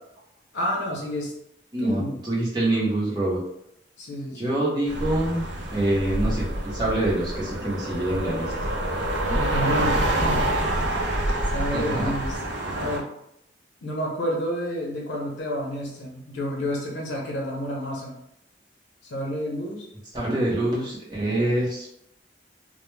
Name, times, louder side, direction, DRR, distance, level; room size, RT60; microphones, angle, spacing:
voice 1, 0.5-1.3 1.8-2.2 4.0-4.6 9.2-10.5 10.8-11.0 11.5-12.4 12.7-13.1 13.8-18.2 19.1-19.9, equal, 75° left, -2 dB, 0.6 m, -30 dB
voice 2, 1.7-3.4 4.4-5.5 5.7-8.5 11.7-12.1 20.1-21.9, right 1 dB, 20° right, -6 dB, 0.7 m, -25 dB
sound 1, 4.9-13.0, right 1 dB, 75° right, 0.6 m, -27 dB
2.1 x 2.1 x 3.1 m, 0.77 s
head